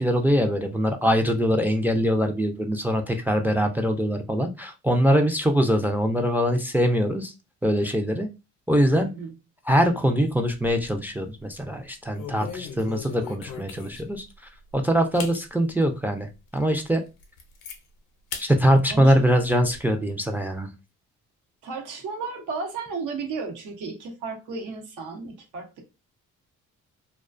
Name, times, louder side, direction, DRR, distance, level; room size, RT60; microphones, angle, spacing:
voice 1, 0.0-7.3 7.6-8.3 8.7-9.1 9.7-14.2 14.7-17.0 18.4-20.7, equal, 5° right, 0.3 m, -23 dB
voice 2, 9.0-9.3 18.9-19.1 21.6-25.8, right 4 dB, 90° right, 0.9 m, -34 dB
sound 1, 10.3-11.0 11.4-11.6 12.1-14.2 14.7-14.8 15.1-15.4 15.9-16.0 16.5-16.6 16.9-17.8 18.3-18.5 18.9-19.8, left 6 dB, 85° left, 0.6 m, -38 dB
2.3 x 2.2 x 2.4 m
cardioid pair, 90°, 30 cm